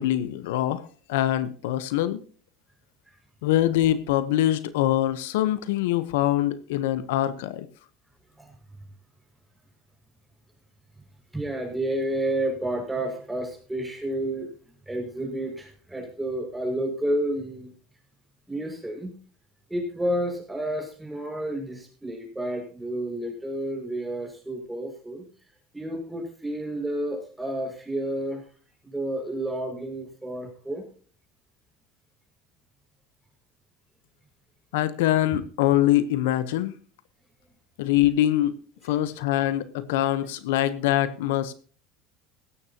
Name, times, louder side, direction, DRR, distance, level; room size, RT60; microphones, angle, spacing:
voice 1, 0.0-2.2 3.4-7.7 34.7-36.8 37.8-38.6 38.8-41.5, left 13 dB, 90° left, 13 dB, 1.0 m, -24 dB
voice 2, 11.3-14.5 14.9-17.7 18.5-19.1 19.7-25.2 25.7-28.4 28.8-30.8, right 1 dB, 5° right, 1 dB, 6.0 m, -30 dB
17.0 x 13.5 x 2.9 m, 0.41 s
supercardioid pair, 120°, 0 cm